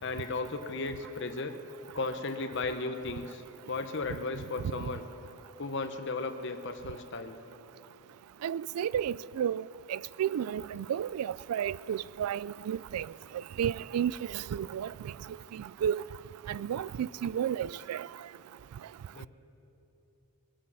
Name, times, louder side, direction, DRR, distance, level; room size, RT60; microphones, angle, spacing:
voice 1, 0.0-1.6 1.9-3.4 3.7-5.1 5.6-7.4 19.1-19.3, left 3 dB, 55° left, 0.8 m, -35 dB
voice 2, 8.4-9.6 9.9-13.1 13.6-15.1 15.5-16.0 16.5-18.1, right 9 dB, 85° right, 0.3 m, -32 dB
21.5 x 8.7 x 6.2 m
head